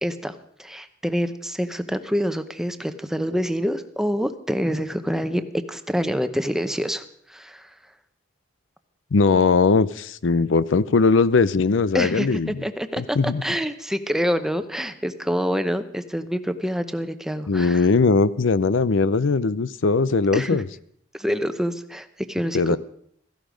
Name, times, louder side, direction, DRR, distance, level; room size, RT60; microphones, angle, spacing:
voice 1, 0.0-7.7 11.9-17.9 20.3-20.6 21.1-22.8, equal, ahead, 9 dB, 0.8 m, -26 dB
voice 2, 9.1-12.5 13.0-13.4 17.5-20.6 22.5-22.8, left 4 dB, 80° left, 17 dB, 0.6 m, -20 dB
16.5 x 15.0 x 5.1 m, 0.66 s
head